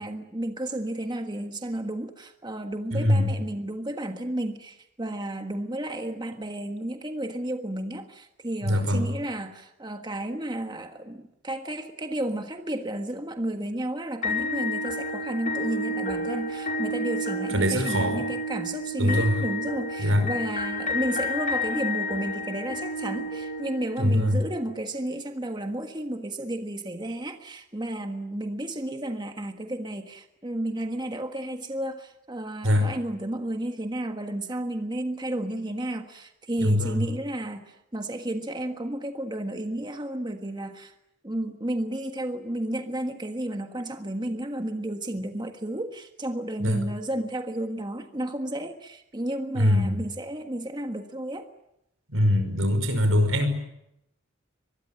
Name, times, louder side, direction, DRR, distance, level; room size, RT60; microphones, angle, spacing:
voice 1, 0.0-40.9 41.2-51.5, right 1 dB, 20° right, 6 dB, 1.5 m, -32 dB
voice 2, 2.9-3.4 8.6-9.1 17.5-18.2 19.0-19.4 20.0-20.3 24.0-24.4 32.6-32.9 36.6-37.1 46.6-46.8 49.5-50.0 52.1-53.5, left 1 dB, 90° right, 9 dB, 5.6 m, -22 dB
sound 1, 14.2-24.3, left 1 dB, 40° left, 5.1 m, -30 dB
24.0 x 22.5 x 9.0 m, 0.84 s
head